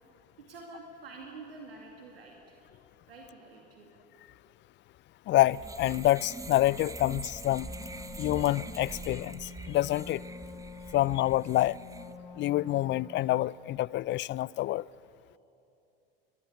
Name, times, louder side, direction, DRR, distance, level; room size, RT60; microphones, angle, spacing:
voice 1, 0.4-2.7 3.1-3.9 10.7-11.0, right 3 dB, 90° right, 2.3 m, -48 dB
voice 2, 5.3-7.7 8.2-10.2 10.9-11.8 12.4-14.9, left 15 dB, 40° left, 0.5 m, -27 dB
sound 1, 5.5-12.1, right 3 dB, 10° right, 0.9 m, -44 dB
Wind instrument woodwind instrument, 7.5-13.5, left 4 dB, 80° left, 4.9 m, -47 dB
23.0 x 21.0 x 8.5 m
hypercardioid pair, 75°, 29 cm